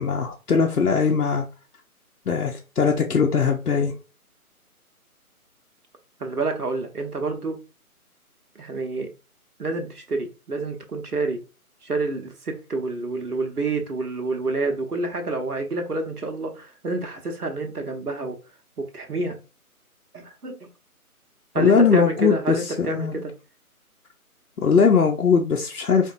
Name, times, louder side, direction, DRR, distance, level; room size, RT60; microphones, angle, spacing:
voice 1, 0.0-1.4 2.3-3.9 21.6-23.1 24.6-26.1, left 5 dB, 85° left, 0.7 m, -20 dB
voice 2, 6.2-7.6 8.5-9.1 9.6-11.4 11.8-18.4 18.8-19.4 20.1-20.7 21.5-23.3, right 3 dB, 85° right, 1.0 m, -28 dB
4.3 x 2.6 x 2.4 m
figure-of-eight pair, 150°, 45 cm